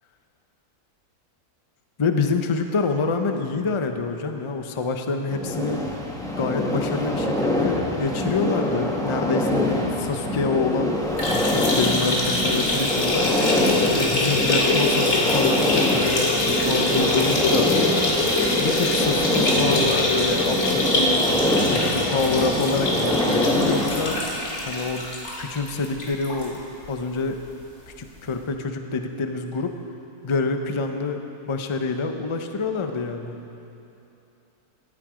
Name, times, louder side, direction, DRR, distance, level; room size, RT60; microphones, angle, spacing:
voice 1, 2.0-5.8 6.4-11.0 11.3-13.3 14.0-17.9 18.6-21.3 21.6-24.2 24.7-25.1 25.4-26.6 26.9-27.4 28.0-29.8 30.2-33.4, left 4 dB, 30° left, 6 dB, 0.6 m, -26 dB
sound 1, 5.3-24.2, left 1 dB, ahead, 1.3 m, -25 dB
sound 2, 11.1-26.5 26.8-26.9 27.3-27.4 28.4-28.5, left 2 dB, 70° left, 2.5 m, -24 dB
17.5 x 12.5 x 5.1 m, 2.9 s
omnidirectional pair, 1.6 m